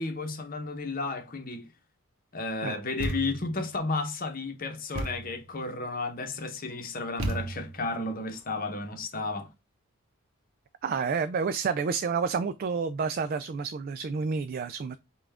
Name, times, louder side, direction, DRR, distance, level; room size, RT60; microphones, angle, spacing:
voice 1, 0.0-1.7 2.3-9.5, left 3 dB, 45° left, 0.8 m, -33 dB
Thump thud, 3.0-3.6 4.9-5.4 7.2-7.9, right 2 dB, 75° right, 0.9 m, -33 dB
voice 2, 10.8-15.0, right 5 dB, 45° right, 0.3 m, -29 dB
5.5 x 2.4 x 3.4 m
head